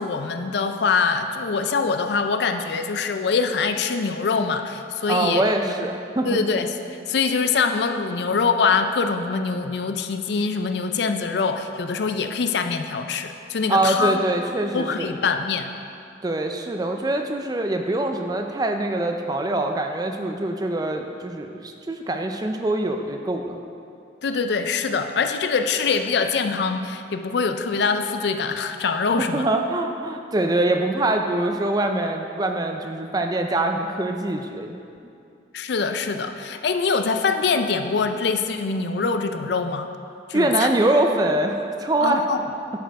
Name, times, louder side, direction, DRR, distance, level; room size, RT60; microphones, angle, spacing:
voice 1, 0.0-5.4 6.2-6.7 7.1-14.2 14.7-15.7 24.2-29.5 35.5-39.9 40.3-40.7 42.0-42.4, left 5 dB, 65° left, 8 dB, 0.4 m, -24 dB
voice 2, 5.1-6.4 13.7-15.1 16.2-23.6 29.2-34.8 40.3-42.2, right 1 dB, 20° right, 4 dB, 0.4 m, -24 dB
10.5 x 4.4 x 4.6 m, 2.5 s
head